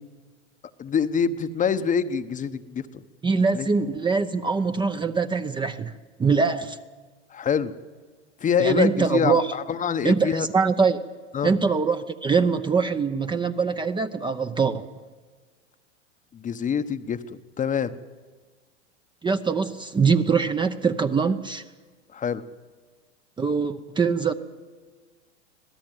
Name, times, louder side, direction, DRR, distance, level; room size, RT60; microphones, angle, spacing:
voice 1, 0.8-2.8 3.5-3.7 7.3-7.7 8.4-10.5 11.3-11.5 16.3-17.9 22.1-22.4, left 7 dB, 20° left, 11 dB, 1.0 m, -25 dB
voice 2, 3.2-5.9 6.2-6.8 8.6-9.5 10.0-11.0 11.4-14.8 19.2-21.6 23.4-24.3, right 5 dB, 15° right, 8 dB, 0.8 m, -23 dB
26.0 x 17.5 x 9.2 m, 1.4 s
hypercardioid pair, 115°, 36 cm